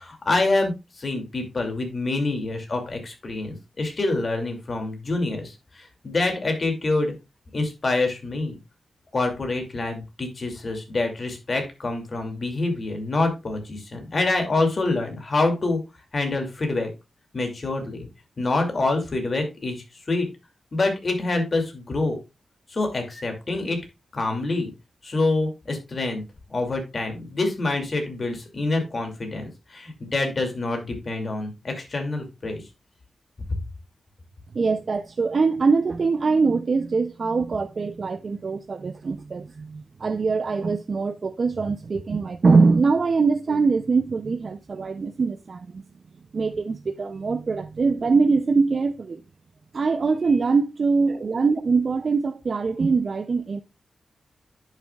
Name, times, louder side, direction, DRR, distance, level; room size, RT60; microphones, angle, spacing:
voice 1, 0.0-7.1 7.5-8.6 9.1-15.8 16.1-16.9 17.3-18.1 18.4-20.3 20.7-22.2 22.7-23.8 24.1-24.7 25.0-26.2 26.5-32.6 33.5-33.6, left 2 dB, 45° left, 2.4 m, -26 dB
voice 2, 34.5-45.8 46.3-49.2 49.7-53.6, right 4 dB, 50° right, 0.5 m, -23 dB
10.5 x 6.5 x 2.3 m
wide cardioid pair, 100°, 0 cm